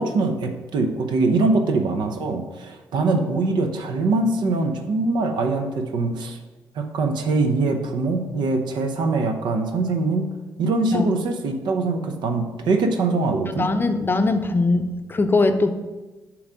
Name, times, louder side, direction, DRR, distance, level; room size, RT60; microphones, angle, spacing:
voice 1, 0.0-6.4 6.7-10.3 10.6-13.7, right 3 dB, 75° right, 6 dB, 0.8 m, -23 dB
voice 2, 13.6-15.7, left 3 dB, 30° left, 7 dB, 0.6 m, -21 dB
7.2 x 3.1 x 5.0 m, 1.2 s
supercardioid pair, 60°, 8 cm